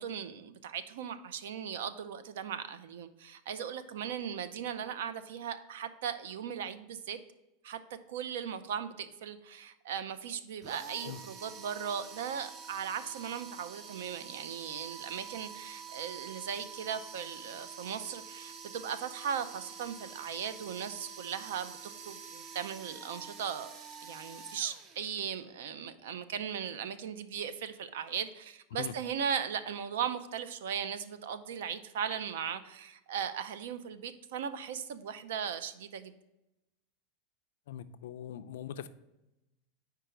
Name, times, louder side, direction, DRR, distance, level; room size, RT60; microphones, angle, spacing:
voice 1, 0.0-7.2 7.6-7.8 8.1-23.8 24.0-36.1, right 8 dB, 80° right, 12 dB, 0.5 m, -38 dB
sound 1, 10.6-25.5, right 6 dB, 30° right, 0.5 m, -47 dB
voice 2, 37.7-38.9, left 10 dB, 80° left, 12 dB, 0.4 m, -41 dB
4.6 x 4.5 x 5.0 m, 0.94 s
supercardioid pair, 165°, 0 cm